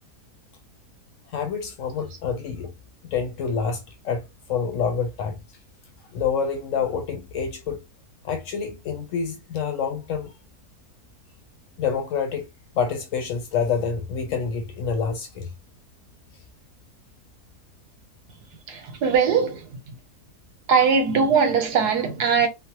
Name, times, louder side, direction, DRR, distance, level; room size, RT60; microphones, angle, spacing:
voice 1, 1.3-2.7 3.0-4.2 4.5-5.4 6.1-7.8 8.2-10.3 11.8-12.5 12.8-15.5, left 6 dB, 65° left, 0.8 m, -27 dB
voice 2, 18.7-19.8 20.7-22.5, right 6 dB, 85° right, 1.4 m, -20 dB
3.1 x 2.0 x 2.8 m
omnidirectional pair, 1.7 m